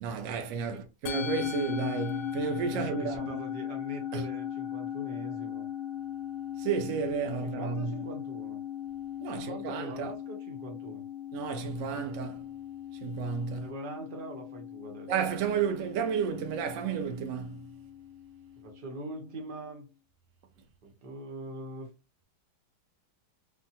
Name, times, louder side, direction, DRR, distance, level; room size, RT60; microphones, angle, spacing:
voice 1, 0.0-3.3 4.1-4.2 6.6-7.9 9.2-10.1 11.3-12.4 13.0-13.7 15.1-17.6, right 6 dB, 85° right, 0.6 m, -32 dB
Musical instrument, 1.1-19.6, left 10 dB, 90° left, 1.3 m, -38 dB
voice 2, 2.6-5.7 7.0-8.6 9.2-11.0 11.7-12.1 13.5-15.1 18.6-19.9 20.8-21.9, right 2 dB, 45° right, 0.7 m, -42 dB
3.2 x 2.2 x 2.7 m
omnidirectional pair, 1.9 m